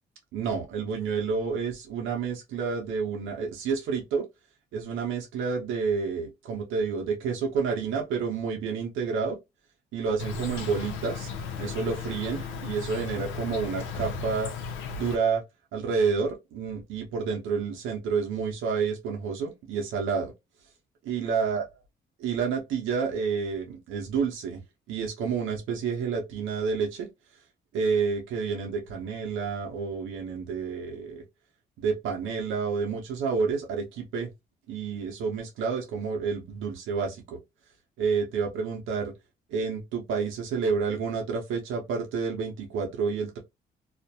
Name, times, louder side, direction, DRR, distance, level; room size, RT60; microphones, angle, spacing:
voice 1, 0.3-4.3 4.7-9.4 9.9-11.3 11.6-14.5 14.9-15.4 15.7-20.3 21.0-21.7 22.2-24.6 24.9-27.1 27.7-31.2 31.8-34.3 34.7-37.4 38.0-39.1 39.5-43.4, right 5 dB, 90° right, 0.7 m, -29 dB
Insect, 10.2-15.2, left 5 dB, 90° left, 0.6 m, -35 dB
2.4 x 2.1 x 2.8 m
cardioid pair, 90°, 20 cm